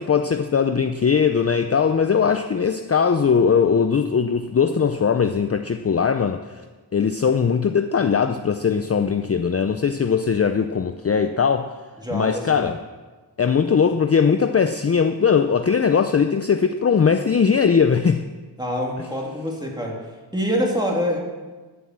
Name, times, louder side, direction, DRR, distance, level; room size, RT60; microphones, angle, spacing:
voice 1, 0.0-6.6 6.9-11.7 12.1-12.8 13.4-18.2, left 6 dB, 35° left, 8 dB, 0.5 m, -20 dB
voice 2, 12.0-12.6 18.6-21.2, equal, 10° right, -2 dB, 2.8 m, -25 dB
13.0 x 7.0 x 7.5 m, 1.3 s
wide cardioid pair, 95°, 42 cm